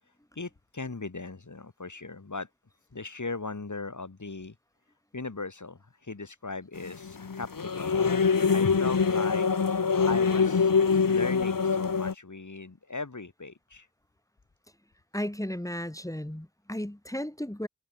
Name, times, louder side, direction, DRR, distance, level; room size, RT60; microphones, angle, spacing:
voice 1, 0.0-2.5 2.8-4.6 5.1-8.1 8.5-9.5 10.1-10.7 11.1-13.9, left 3 dB, 65° left, 5.2 m, -38 dB
sound 1, 6.8-12.1, left 5 dB, 90° left, 1.8 m, -24 dB
voice 2, 15.1-17.7, left 1 dB, 10° left, 2.4 m, -34 dB
wide cardioid pair, 45°, 32 cm